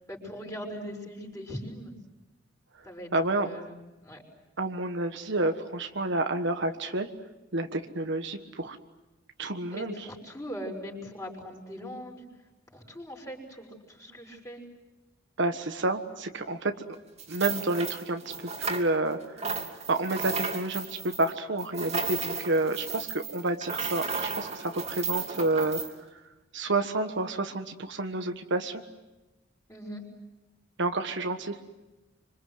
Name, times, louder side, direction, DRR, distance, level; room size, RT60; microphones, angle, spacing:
voice 1, 0.0-1.9 2.8-4.2 9.7-12.2 12.7-14.6 29.7-30.0, equal, 15° left, 0 dB, 5.6 m, -40 dB
voice 2, 3.1-3.5 4.6-7.1 7.5-8.8 9.4-9.9 15.4-16.7 17.3-18.2 18.6-19.2 19.9-20.9 21.2-25.8 26.5-28.8 30.8-31.5, right 2 dB, 65° right, 6 dB, 1.5 m, -29 dB
sound 1, 17.2-19.1 19.4-25.9, right 5 dB, 35° right, 2.9 m, -34 dB
26.0 x 26.0 x 8.0 m, 1.1 s
head